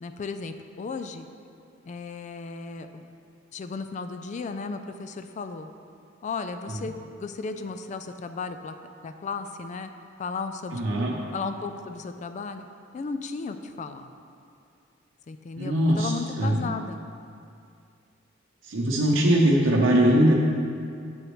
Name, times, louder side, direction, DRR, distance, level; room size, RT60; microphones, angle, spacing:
voice 1, 0.0-1.3 1.8-3.1 3.5-5.7 6.2-8.7 9.0-9.9 10.2-10.8 11.3-12.7 12.9-14.1 15.3-17.0, left 4 dB, 40° left, 8 dB, 0.3 m, -35 dB
voice 2, 10.7-11.1 15.6-16.1 16.4-16.6 18.6-20.3, right 1 dB, 75° right, -4 dB, 0.7 m, -21 dB
8.0 x 7.1 x 3.1 m, 2.4 s
head